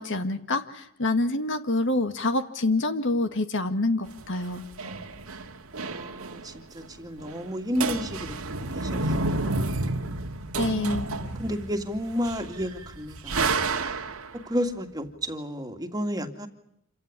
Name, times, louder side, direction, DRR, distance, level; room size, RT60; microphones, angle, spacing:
voice 1, 0.0-4.7 10.6-11.1, left 2 dB, 55° left, 2.0 m, -26 dB
sound 1, 4.1-6.6 6.8-6.9 7.2-7.5 7.8-14.4, right 3 dB, 70° right, 2.0 m, -30 dB
voice 2, 4.8-5.2 5.8-8.4 8.7-9.6 10.7-13.6 14.5-16.5, equal, 15° right, 2.4 m, -32 dB
28.0 x 16.5 x 9.8 m
head